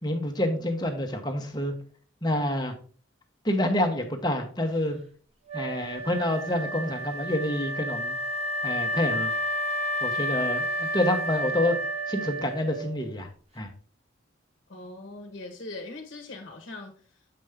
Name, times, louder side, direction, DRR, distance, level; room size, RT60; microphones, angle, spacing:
voice 1, 0.0-1.7 2.2-2.7 3.4-5.0 5.5-8.2 8.6-9.3 10.0-11.8 12.1-13.3 13.5-13.7, left 1 dB, 20° left, 4 dB, 1.1 m, -27 dB
Wind instrument woodwind instrument, 5.5-13.0, equal, 30° right, 0.9 m, -31 dB
voice 2, 14.7-17.4, left 2 dB, 50° left, 3 dB, 1.2 m, -41 dB
7.7 x 5.2 x 3.5 m, 0.42 s
head